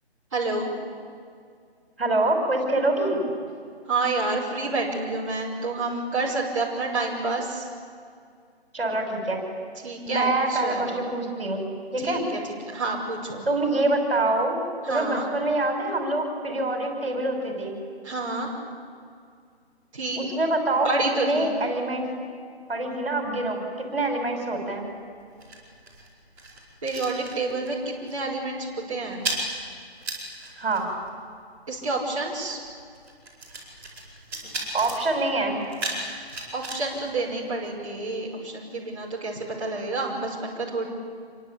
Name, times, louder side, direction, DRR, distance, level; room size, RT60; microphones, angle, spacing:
voice 1, 0.3-0.7 3.9-7.7 9.8-11.0 12.0-12.2 12.7-13.4 14.8-15.3 18.0-18.5 19.9-20.2 20.8-21.5 26.8-29.3 31.7-32.6 36.3-40.9, right 3 dB, 30° right, -5 dB, 5.6 m, -29 dB
voice 2, 2.0-3.2 8.7-9.4 10.1-11.6 11.9-12.2 13.5-14.6 14.9-17.8 20.2-20.9 21.2-22.1 22.7-24.9 30.6-30.9 34.7-35.6, right 2 dB, 60° right, 3 dB, 5.9 m, -25 dB
sound 1, 24.5-27.8 28.0-28.3 28.6-38.0, right 2 dB, 5° right, 5.1 m, -37 dB
27.5 x 24.0 x 8.6 m, 2.3 s
hypercardioid pair, 175°, 33 cm